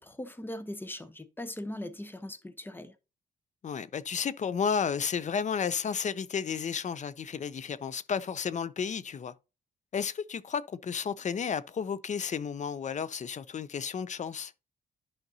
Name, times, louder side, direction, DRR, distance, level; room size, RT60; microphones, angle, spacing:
voice 1, 0.0-2.9, left 1 dB, 10° left, 0.9 m, -40 dB
voice 2, 3.6-9.3 9.9-14.5, left 6 dB, 45° left, 0.5 m, -32 dB
11.0 x 5.1 x 2.8 m
cardioid pair, 95°, 17 cm